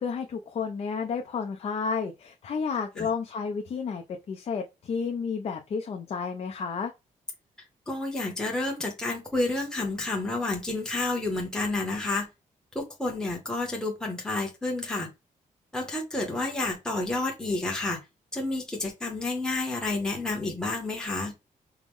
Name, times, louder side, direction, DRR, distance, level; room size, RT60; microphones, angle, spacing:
voice 1, 0.0-6.9, left 5 dB, 45° left, 0.5 m, -31 dB
voice 2, 7.9-12.3 12.7-15.1 15.7-18.0 18.3-21.3, left 2 dB, 5° left, 0.9 m, -30 dB
4.6 x 2.0 x 3.5 m
wide cardioid pair, 155°, 14 cm